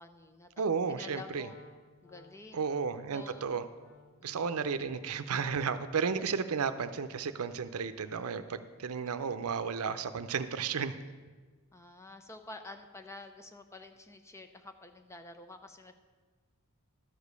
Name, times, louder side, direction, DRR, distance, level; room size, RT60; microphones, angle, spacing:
voice 1, 0.0-0.5 1.0-1.6 2.0-2.6 3.1-3.5 4.2-4.5 11.7-15.9, left 2 dB, 15° left, 7 dB, 0.6 m, -49 dB
voice 2, 0.6-1.5 2.5-3.6 4.2-11.0, right 6 dB, 85° right, 11 dB, 0.6 m, -33 dB
Wind instrument woodwind instrument, 1.4-5.5, left 4 dB, 70° left, 1.1 m, -59 dB
12.5 x 5.0 x 6.7 m, 1.4 s
head